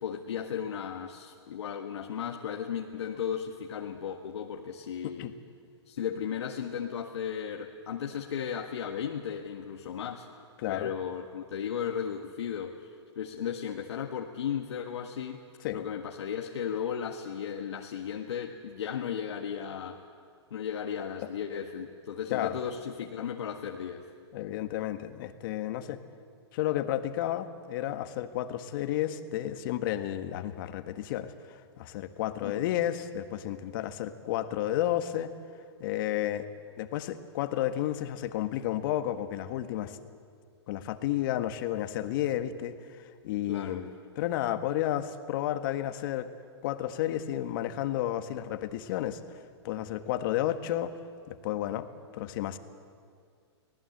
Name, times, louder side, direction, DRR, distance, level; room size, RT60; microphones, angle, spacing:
voice 1, 0.0-5.3 5.9-10.3 10.7-15.4 15.7-20.0 20.5-24.1 32.4-32.7 43.5-43.8, left 8 dB, 75° left, 1 dB, 1.6 m, -35 dB
voice 2, 10.6-10.9 15.6-15.8 22.3-22.6 24.3-26.0 26.5-35.3 35.8-36.5 36.8-40.0 40.7-46.3 46.6-49.2 49.6-50.9 51.3-51.9 52.1-52.6, left 12 dB, 50° left, 9 dB, 1.6 m, -32 dB
24.0 x 18.5 x 8.0 m, 2.2 s
hypercardioid pair, 135°, 15 cm